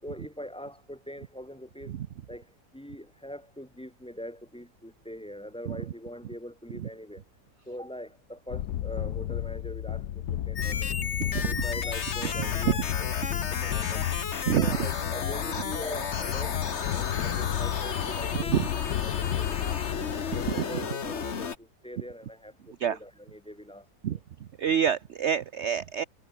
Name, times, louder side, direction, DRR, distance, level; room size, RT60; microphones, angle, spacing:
voice 1, 0.0-2.0 2.3-7.2 7.7-11.0 11.3-14.1 14.5-24.2, equal, 5° left, 2.1 m, -43 dB
sound 1, 8.5-20.5, left 12 dB, 75° left, 1.3 m, -32 dB
sound 2, 10.6-21.6, left 6 dB, 45° left, 1.6 m, -33 dB
voice 2, 24.6-26.0, right 9 dB, 55° right, 0.8 m, -26 dB
omnidirectional pair, 1.8 m